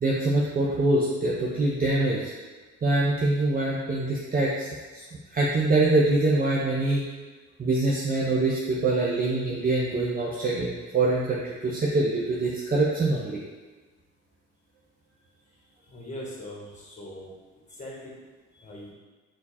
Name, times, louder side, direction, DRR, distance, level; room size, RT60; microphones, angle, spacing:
voice 1, 0.0-2.3 2.8-4.7 4.9-5.0 5.3-7.0 7.6-13.4, right 2 dB, 30° right, -5 dB, 0.6 m, -24 dB
voice 2, 15.9-17.3 17.7-18.1 18.6-18.9, left 1 dB, 25° left, -4 dB, 1.3 m, -40 dB
4.3 x 2.5 x 4.1 m, 1.3 s
cardioid pair, 90°, 30 cm